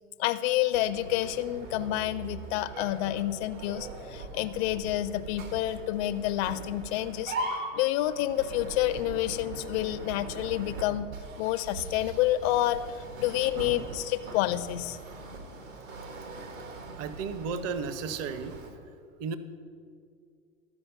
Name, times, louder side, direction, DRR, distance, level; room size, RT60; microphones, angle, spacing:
voice 1, 0.2-7.3 7.7-11.1 11.4-12.8 13.2-15.0, left 14 dB, 55° left, 12 dB, 0.4 m, -29 dB
sound 1, 0.7-18.7, right 3 dB, 75° right, 1.7 m, -41 dB
voice 2, 17.0-18.6 19.2-19.4, right 5 dB, 40° right, 12 dB, 0.7 m, -33 dB
13.0 x 5.2 x 5.7 m, 2.3 s
hypercardioid pair, 100°, 40 cm